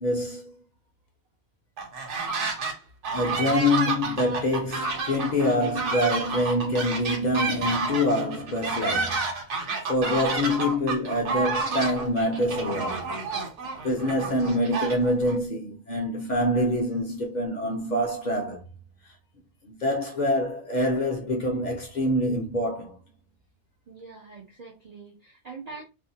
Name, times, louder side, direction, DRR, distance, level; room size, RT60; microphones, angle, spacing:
voice 1, 0.0-0.5 3.1-9.3 9.9-13.0 13.8-18.6 19.6-23.0, left 1 dB, 50° left, 0.6 m, -25 dB
sound 1, 1.8-2.7 3.0-15.4, right 4 dB, 80° right, 1.1 m, -30 dB
voice 2, 3.3-3.6 5.3-5.4 6.2-6.4 23.9-25.8, right 5 dB, 55° right, 0.4 m, -43 dB
2.6 x 2.1 x 2.6 m
omnidirectional pair, 1.2 m